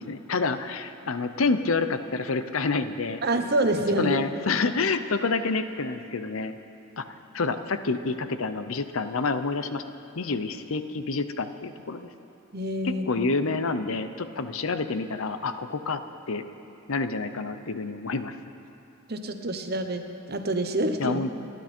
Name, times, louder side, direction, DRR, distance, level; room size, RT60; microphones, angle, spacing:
voice 1, 0.0-3.2 4.0-6.6 7.0-7.1 7.3-9.8 10.2-12.1 12.8-16.0 16.3-16.4 16.9-18.4 21.0-21.3, left 4 dB, 65° left, 10 dB, 0.7 m, -28 dB
voice 2, 3.2-4.2 12.5-13.3 19.1-21.2, right 1 dB, 50° right, 6 dB, 1.1 m, -27 dB
28.5 x 11.0 x 4.5 m, 2.9 s
head